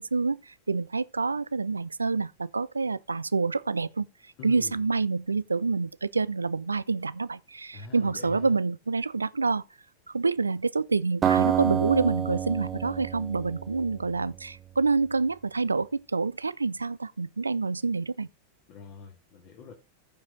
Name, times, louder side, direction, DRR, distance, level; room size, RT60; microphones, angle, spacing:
voice 1, 0.0-4.1 4.4-9.6 10.1-18.3, right 4 dB, 80° right, 0.4 m, -27 dB
voice 2, 4.4-4.8 7.7-8.6 18.7-19.7, left 5 dB, 45° left, 2.0 m, -45 dB
Acoustic guitar, 11.2-14.4, right 9 dB, 25° right, 0.9 m, -28 dB
14.5 x 4.9 x 3.9 m
figure-of-eight pair, 90°, 0 cm